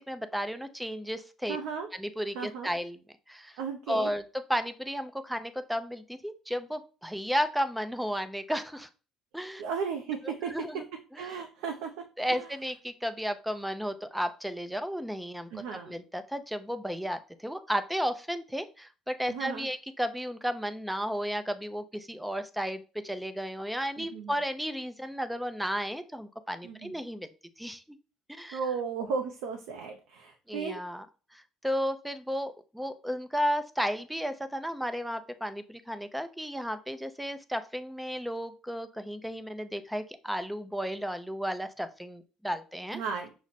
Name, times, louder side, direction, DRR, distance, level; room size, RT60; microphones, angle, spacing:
voice 1, 0.1-1.6 2.0-3.0 3.3-3.6 3.9-4.2 4.5-8.9 9.3-9.6 10.2-10.8 12.2-27.3 27.6-28.0 28.3-28.6 30.5-31.1 31.3-43.0, equal, 5° right, 10 dB, 0.5 m, -33 dB
voice 2, 1.5-1.9 2.3-2.7 3.6-4.1 9.6-10.5 11.2-11.9 12.3-12.5 15.5-15.9 19.3-19.7 24.0-24.4 26.6-27.0 28.5-30.8 42.9-43.4, right 6 dB, 85° right, 4 dB, 0.5 m, -35 dB
5.9 x 2.1 x 4.1 m, 0.35 s
supercardioid pair, 85°, 0 cm